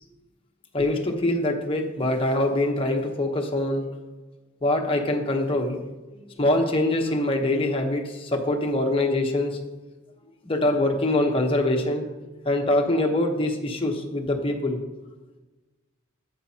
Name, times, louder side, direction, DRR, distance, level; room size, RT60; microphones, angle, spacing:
voice 1, 0.7-3.8 4.6-5.8 6.4-9.6 10.4-12.1 12.4-14.8, left 1 dB, 25° left, 1 dB, 1.1 m, -24 dB
9.9 x 8.6 x 2.9 m, 1.1 s
head